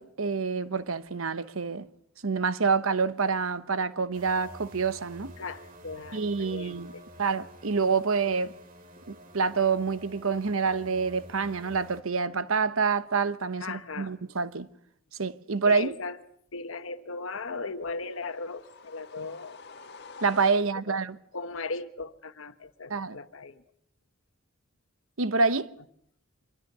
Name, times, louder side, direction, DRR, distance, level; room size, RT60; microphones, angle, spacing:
voice 1, 0.0-1.9 2.2-5.3 6.1-6.9 7.2-8.5 9.1-14.7 15.2-15.9 20.2-21.2 22.9-23.2 25.2-25.7, right 5 dB, 80° right, 1.0 m, -27 dB
sound 1, 4.1-12.0, right 1 dB, 40° right, 3.1 m, -49 dB
voice 2, 5.4-7.0 13.6-14.1 15.6-16.2 16.5-19.6 20.9-21.0 21.3-23.6, left 3 dB, 75° left, 1.3 m, -37 dB
sound 2, 17.8-21.0, left 4 dB, 50° left, 1.8 m, -48 dB
25.5 x 23.0 x 6.7 m
head